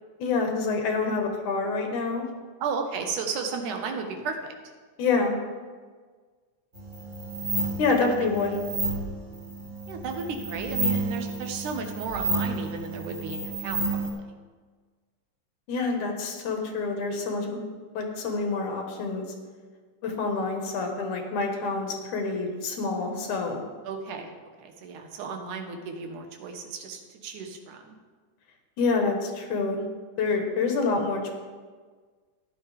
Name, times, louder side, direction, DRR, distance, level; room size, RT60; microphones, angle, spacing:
voice 1, 0.2-2.2 5.0-5.4 7.8-8.6 15.7-17.6 17.9-19.3 20.0-23.6 28.8-29.9 30.2-31.3, left 4 dB, 70° left, 3 dB, 2.7 m, -27 dB
voice 2, 2.6-4.5 8.0-8.6 9.9-14.3 23.9-28.0, right 5 dB, 75° right, 4 dB, 2.5 m, -34 dB
sound 1, 6.7-14.1, right 3 dB, 30° right, 0.7 m, -31 dB
14.0 x 10.5 x 3.4 m, 1.5 s
omnidirectional pair, 3.6 m